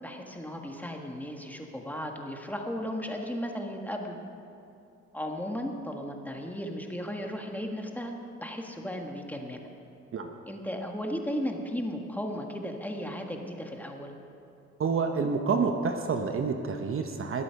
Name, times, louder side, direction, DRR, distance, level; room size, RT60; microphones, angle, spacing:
voice 1, 0.0-4.2 5.1-8.1 8.4-9.6 10.5-14.1, equal, 5° left, 2 dB, 1.7 m, -35 dB
voice 2, 14.8-17.4, right 5 dB, 45° right, 5 dB, 1.0 m, -28 dB
20.5 x 8.5 x 5.9 m, 2.7 s
cardioid pair, 90°, 30 cm